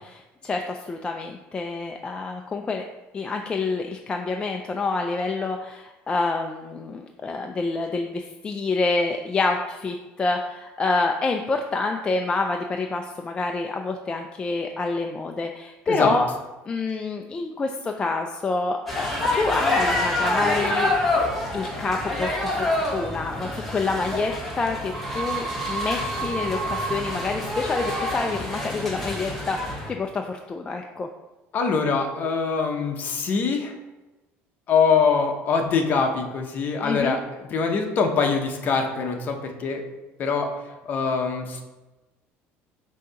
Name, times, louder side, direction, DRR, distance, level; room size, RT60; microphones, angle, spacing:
voice 1, 0.0-2.8 3.1-16.3 16.7-19.1 19.3-20.9 21.5-29.6 29.9-31.1 36.8-37.2, left 3 dB, 20° left, 3 dB, 0.3 m, -27 dB
sound 1, 18.9-29.9, left 1 dB, 5° left, 1.0 m, -27 dB
voice 2, 31.5-33.7 34.7-37.2 37.5-39.8 40.2-40.5 40.8-41.6, left 5 dB, 40° left, 3 dB, 0.8 m, -23 dB
6.3 x 2.8 x 5.5 m, 1.1 s
cardioid pair, 160°, 5 cm